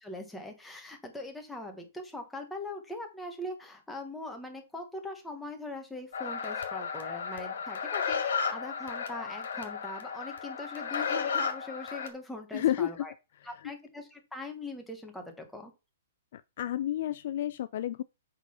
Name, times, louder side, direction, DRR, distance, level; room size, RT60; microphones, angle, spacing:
voice 1, 0.0-13.1 13.4-15.7, left 2 dB, ahead, 1.2 m, -41 dB
sound 1, 6.1-12.1, left 6 dB, 65° left, 2.2 m, -34 dB
voice 2, 12.5-13.1 16.3-18.0, left 12 dB, 45° left, 0.3 m, -31 dB
8.1 x 3.7 x 5.6 m
hypercardioid pair, 175°, 0 cm